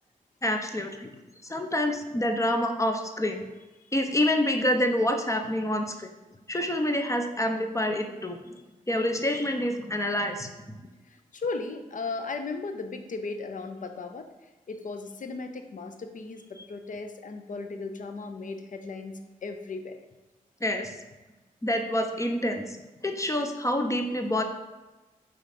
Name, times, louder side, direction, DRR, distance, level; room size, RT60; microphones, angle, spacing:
voice 1, 0.4-1.1 1.4-3.4 3.9-6.1 6.5-8.4 8.9-10.5 20.6-21.0 21.6-22.8 23.0-24.4, left 1 dB, 20° left, 5 dB, 0.8 m, -27 dB
voice 2, 11.1-14.3 14.7-20.0, left 3 dB, 60° left, 7 dB, 0.8 m, -36 dB
5.0 x 3.9 x 5.8 m, 1.1 s
cardioid pair, 50°, 15 cm